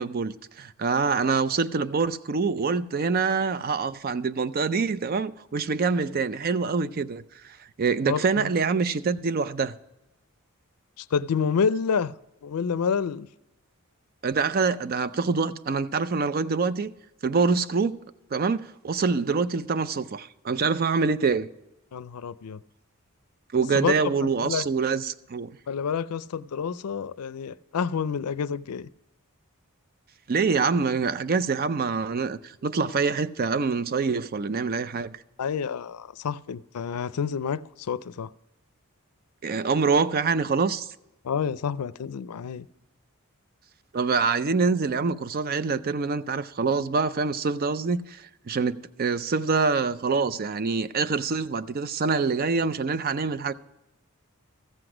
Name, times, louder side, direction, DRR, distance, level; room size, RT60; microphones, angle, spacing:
voice 1, 0.0-9.8 14.2-16.9 17.2-18.0 18.3-21.5 23.5-25.5 30.3-35.2 39.4-40.9 43.9-53.5, right 4 dB, 40° right, 0.4 m, -25 dB
voice 2, 8.1-8.5 11.0-12.1 12.4-13.3 21.9-22.6 23.7-23.9 24.2-24.6 25.7-28.9 35.4-38.3 41.2-42.7, left 6 dB, 90° left, 0.4 m, -28 dB
14.0 x 7.9 x 4.9 m
head